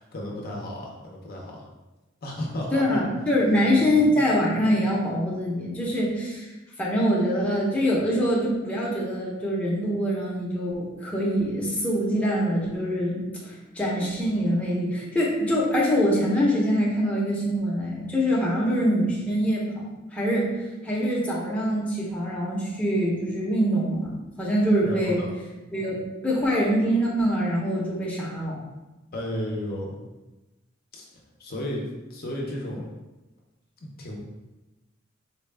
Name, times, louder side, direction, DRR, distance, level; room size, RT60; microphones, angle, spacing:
voice 1, 0.0-1.6 2.2-3.0 3.9-4.2 24.8-25.3 29.1-30.0 30.9-31.1 31.4-31.8 32.1-32.9 33.8-34.2, left 1 dB, 50° left, -1 dB, 0.6 m, -33 dB
voice 2, 2.7-6.5 6.8-19.7 20.1-20.5 20.8-25.2 25.7-28.6, equal, 5° left, -6 dB, 0.7 m, -24 dB
4.1 x 2.2 x 3.3 m, 1.1 s
head